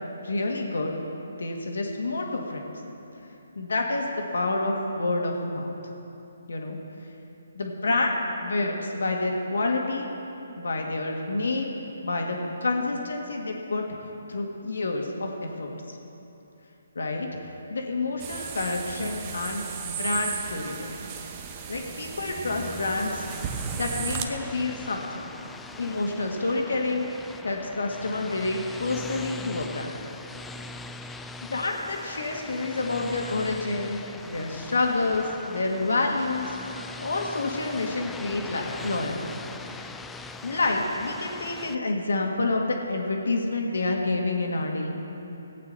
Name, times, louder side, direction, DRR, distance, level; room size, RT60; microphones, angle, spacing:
voice 1, 0.2-1.0 1.4-2.6 3.6-5.7 6.5-6.8 7.5-10.1 10.6-13.8 14.3-16.0 17.0-17.3 17.7-21.0 21.7-23.2 23.7-25.2 25.8-27.1 27.4-29.9 31.5-36.6 37.0-39.2 39.7-39.9 40.4-44.9, left 2 dB, 80° left, 1 dB, 2.0 m, -28 dB
sound 1, 18.2-24.2, right 7 dB, 30° right, 0.9 m, -35 dB
sound 2, 22.4-41.8, left 3 dB, 5° left, 0.3 m, -41 dB
18.0 x 8.8 x 4.2 m, 2.9 s
hypercardioid pair, 155°, 0 cm